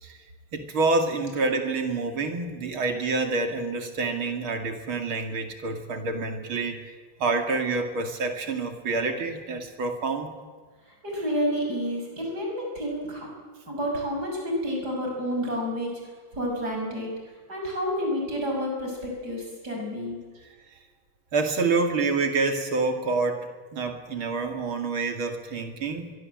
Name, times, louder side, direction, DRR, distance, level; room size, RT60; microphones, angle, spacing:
voice 1, 0.5-6.9 7.2-10.4 21.3-26.1, right 3 dB, 85° right, 5 dB, 3.3 m, -27 dB
voice 2, 10.9-13.3 13.7-16.0 16.3-17.1 17.5-20.2, equal, 50° right, 0 dB, 7.0 m, -29 dB
23.5 x 23.0 x 7.9 m, 1.5 s
omnidirectional pair, 2.2 m